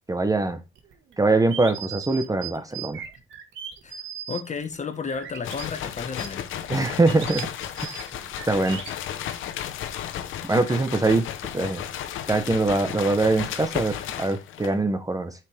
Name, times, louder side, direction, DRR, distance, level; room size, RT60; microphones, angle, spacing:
voice 1, 0.1-0.6 1.2-3.0 6.7-7.5 8.5-8.8 10.4-11.2 11.5-11.8 12.3-15.3, right 2 dB, 15° right, 1.0 m, -23 dB
sound 1, 0.8-5.6 6.1-8.9, right 9 dB, 75° right, 1.7 m, -38 dB
voice 2, 4.3-6.6, left 5 dB, 35° left, 1.5 m, -33 dB
sound 2, 5.4-14.8, left 10 dB, 80° left, 1.0 m, -34 dB
9.8 x 6.0 x 3.5 m
cardioid pair, 90°, 20 cm